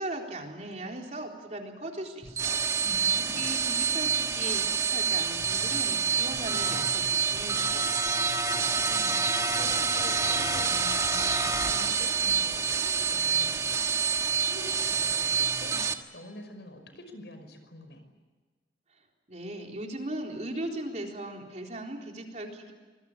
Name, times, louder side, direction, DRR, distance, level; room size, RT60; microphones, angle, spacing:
voice 1, 0.0-2.7 3.4-8.2 19.3-22.7, right 1 dB, 40° right, 2 dB, 3.9 m, -38 dB
sound 1, 2.2-15.9, right 6 dB, 20° right, 1.5 m, -27 dB
voice 2, 2.8-3.5 8.6-18.0, left 1 dB, 75° left, 8 dB, 5.5 m, -47 dB
26.0 x 21.5 x 8.7 m, 1.4 s
head